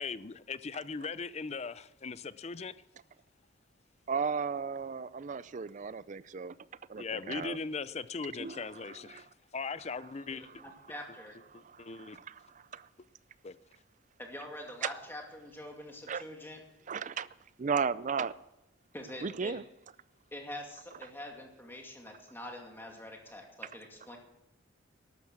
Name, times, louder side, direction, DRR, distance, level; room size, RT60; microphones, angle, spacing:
voice 1, 0.0-2.7 7.0-9.3 9.5-10.5 11.5-12.2 13.4-13.6, left 4 dB, 35° left, 0.5 m, -39 dB
voice 2, 4.1-6.6 6.9-7.6 8.3-9.2 11.5-12.9 14.8-14.9 16.1-16.2 16.9-17.3 17.6-18.3 19.2-19.6, right 6 dB, 40° right, 0.4 m, -35 dB
voice 3, 10.3-11.4 14.2-16.6 18.9-19.5 20.3-24.2, left 1 dB, 10° left, 2.4 m, -45 dB
13.0 x 12.0 x 6.2 m
head